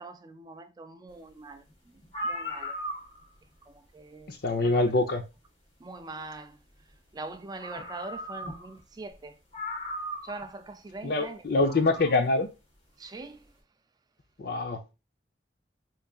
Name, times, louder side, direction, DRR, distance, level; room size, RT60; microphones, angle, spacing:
voice 1, 0.0-1.6 2.2-2.7 3.9-4.3 4.6-4.8 5.8-6.5 7.1-9.3 10.2-11.4 13.0-13.4, right 3 dB, 20° right, 0.3 m, -42 dB
sound 1, 1.7-1.8 2.0-3.4 4.8-4.9 7.2-7.3 7.6-8.8 9.1-9.2 9.5-10.5 11.5-12.2, equal, 35° left, 1.4 m, -37 dB
voice 2, 4.3-5.2 11.0-12.5 14.4-15.0, left 2 dB, 60° left, 0.6 m, -25 dB
3.9 x 3.4 x 2.4 m
head